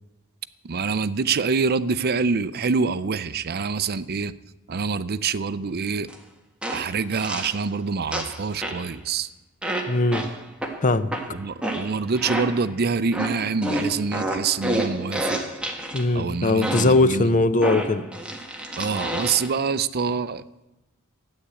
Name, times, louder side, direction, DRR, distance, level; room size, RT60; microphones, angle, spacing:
voice 1, 0.6-4.3 4.7-6.1 6.7-9.3 11.3-15.4 16.1-17.4 18.8-20.6, right 5 dB, 45° right, 16 dB, 0.5 m, -26 dB
sound 1, 6.1-6.2 6.6-7.6 8.1-8.9 9.6-12.7 13.1-16.1 16.6-17.1 17.6-19.5, right 1 dB, 5° right, 1.5 m, -29 dB
voice 2, 9.9-10.3 10.8-11.1 15.9-18.1, left 2 dB, 35° left, 13 dB, 0.6 m, -20 dB
13.0 x 9.8 x 8.2 m, 0.95 s
head